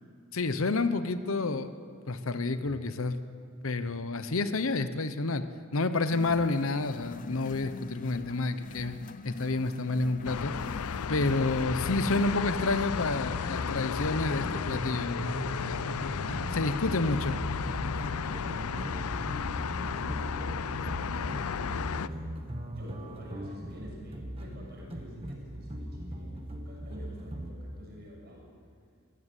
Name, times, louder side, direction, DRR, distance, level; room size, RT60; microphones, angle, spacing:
voice 1, 0.3-1.7 2.1-3.2 3.6-9.0 9.2-10.5 11.1-15.8 16.3-17.4, left 3 dB, 65° left, 11 dB, 0.9 m, -29 dB
sound 1, 6.1-12.4, left 3 dB, 35° left, 0.5 m, -44 dB
sound 2, 10.2-22.1, left 6 dB, 85° left, 0.5 m, -34 dB
sound 3, 13.2-27.5, equal, 25° right, 1.5 m, -39 dB
voice 2, 18.0-28.5, equal, 45° right, -2 dB, 6.9 m, -48 dB
22.5 x 15.5 x 8.2 m, 2.2 s
head